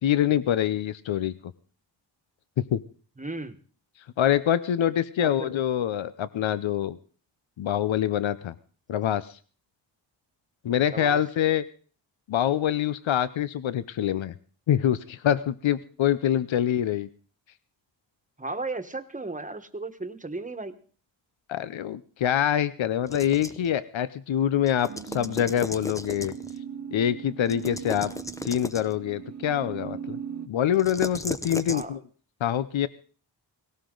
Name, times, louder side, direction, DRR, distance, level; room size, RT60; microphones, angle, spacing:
voice 1, 0.0-1.3 2.6-2.8 4.2-7.0 7.6-8.5 8.9-9.4 10.6-11.6 12.3-14.3 14.7-17.1 21.5-26.3 26.9-28.1 28.4-30.2 30.5-32.0 32.4-32.9, left 10 dB, 90° left, 16 dB, 0.7 m, -25 dB
voice 2, 3.2-3.6 5.2-5.5 10.9-11.2 18.4-20.8 31.7-32.0, right 3 dB, 15° right, 9 dB, 1.3 m, -35 dB
sound 1, 23.1-23.7 24.7-26.6 27.5-29.0 30.7-31.8, left 1 dB, 5° left, 0.7 m, -36 dB
sound 2, 24.9-30.5, right 8 dB, 35° right, 0.7 m, -39 dB
18.5 x 18.0 x 3.9 m, 0.42 s
wide cardioid pair, 110°, 45 cm